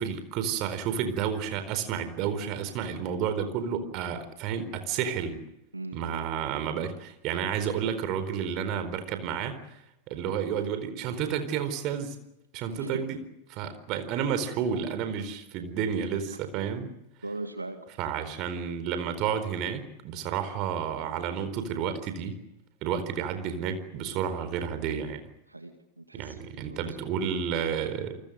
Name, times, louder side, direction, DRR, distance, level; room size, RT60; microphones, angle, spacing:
voice 1, 0.0-5.4 5.9-9.6 10.1-12.2 12.5-13.2 13.5-16.9 18.0-22.4 22.8-25.2 26.1-28.2, right 7 dB, 40° right, 10 dB, 4.3 m, -31 dB
voice 2, 12.7-13.1 17.2-17.9 25.5-27.0, right 2 dB, 85° right, 7 dB, 2.1 m, -39 dB
29.5 x 25.0 x 6.5 m, 0.83 s
figure-of-eight pair, 90°, 0 cm